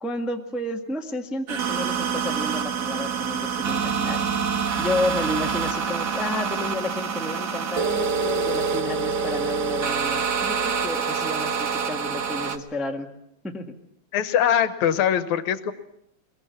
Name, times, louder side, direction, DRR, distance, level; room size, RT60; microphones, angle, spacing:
voice 1, 0.0-4.3 4.8-13.1 13.4-13.8, left 2 dB, ahead, 2 dB, 0.9 m, -31 dB
sound 1, 1.5-12.6, right 6 dB, 55° right, 1.1 m, -26 dB
voice 2, 14.1-15.7, left 9 dB, 80° left, 11 dB, 2.4 m, -22 dB
22.0 x 22.0 x 7.1 m, 0.77 s
omnidirectional pair, 3.3 m